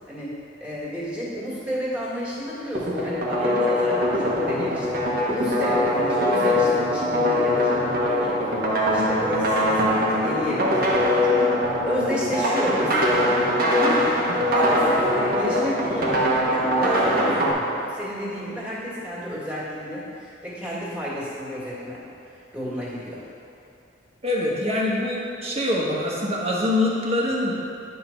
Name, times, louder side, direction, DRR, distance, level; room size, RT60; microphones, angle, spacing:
voice 1, 0.6-8.4 8.9-14.1 14.5-22.0 22.5-23.2, equal, 5° right, -8 dB, 2.0 m, -31 dB
sound 1, 2.7-17.5, left 1 dB, 55° right, 1.2 m, -22 dB
voice 2, 24.2-27.5, left 1 dB, 35° right, -4 dB, 1.3 m, -24 dB
9.8 x 3.8 x 5.8 m, 2.7 s
head